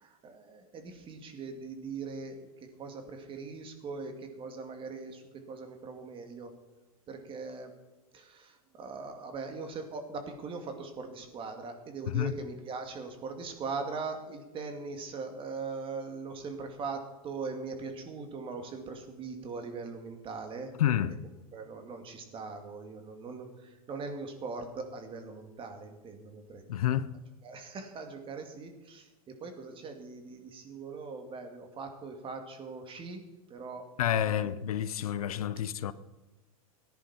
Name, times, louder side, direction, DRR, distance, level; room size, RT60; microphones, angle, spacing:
voice 1, 0.0-6.5 7.1-7.7 8.1-20.7 21.5-26.6 27.4-33.2 33.5-33.8 34.2-34.3, right 4 dB, 30° right, 2.5 m, -41 dB
voice 2, 20.8-21.1 26.7-27.1 34.0-35.9, left 10 dB, 80° left, 0.8 m, -29 dB
17.5 x 11.0 x 4.4 m
hypercardioid pair, 120°, 18 cm